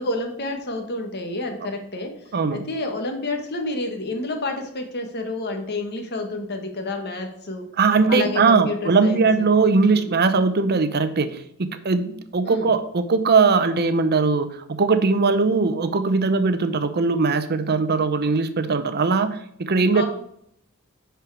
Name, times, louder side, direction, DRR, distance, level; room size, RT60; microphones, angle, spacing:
voice 1, 0.0-2.1 2.5-7.6 8.1-9.5 9.8-10.1 12.4-12.7 19.9-20.0, left 2 dB, 50° left, 4 dB, 1.4 m, -29 dB
voice 2, 2.3-2.7 7.8-20.0, right 4 dB, 45° right, 11 dB, 0.7 m, -20 dB
10.0 x 4.5 x 4.7 m, 0.70 s
head